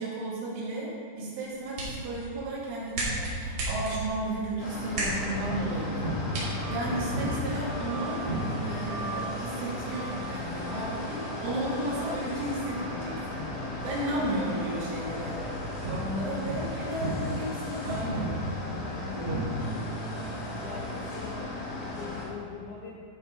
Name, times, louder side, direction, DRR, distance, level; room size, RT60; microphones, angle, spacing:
voice 1, 0.0-15.4 15.8-18.3 19.0-19.6, right 1 dB, 80° right, -6 dB, 4.6 m, -34 dB
sound 1, 1.3-7.3, right 2 dB, 55° right, 4.0 m, -36 dB
sound 2, 4.6-22.3, left 1 dB, 55° left, 1.9 m, -36 dB
sound 3, 5.4-13.3 13.6-13.7 14.6-14.7 15.8-22.3, right 1 dB, 25° right, 1.1 m, -37 dB
voice 2, 20.6-22.9, left 6 dB, 85° left, -3 dB, 2.1 m, -42 dB
14.5 x 5.0 x 5.1 m, 2.2 s
omnidirectional pair, 5.5 m